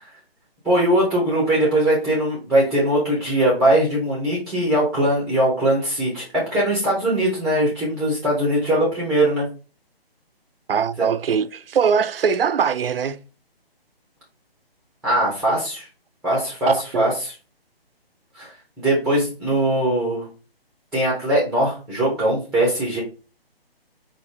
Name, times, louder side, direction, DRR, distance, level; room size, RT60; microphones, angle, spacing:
voice 1, 0.6-9.5 11.0-11.1 15.0-15.9 16.2-17.3 18.3-18.5 18.8-20.3 20.9-23.0, right 1 dB, ahead, 0.7 m, -21 dB
voice 2, 10.7-13.2 16.7-17.0, right 7 dB, 70° right, 0.5 m, -21 dB
4.9 x 2.6 x 3.5 m
figure-of-eight pair, 145°, 31 cm